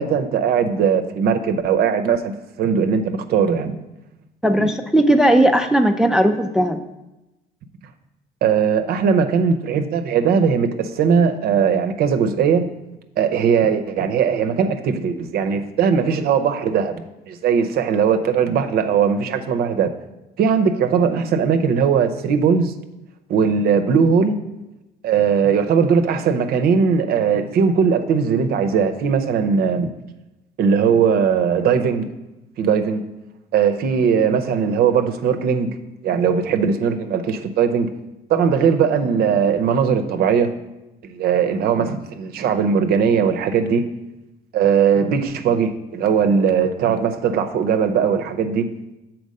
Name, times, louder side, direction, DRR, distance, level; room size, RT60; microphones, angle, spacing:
voice 1, 0.0-2.3 2.6-3.8 4.6-4.7 8.4-12.7 13.2-19.9 20.4-22.7 23.3-24.4 25.0-29.9 30.6-32.1 32.6-33.0 33.5-35.7 36.0-37.9 38.3-40.5 41.0-43.9 44.5-48.6, right 6 dB, 65° right, 7 dB, 0.6 m, -19 dB
voice 2, 4.4-6.8, right 1 dB, 5° right, 7 dB, 0.3 m, -16 dB
6.3 x 4.4 x 5.3 m, 0.98 s
cardioid pair, 110°, 17 cm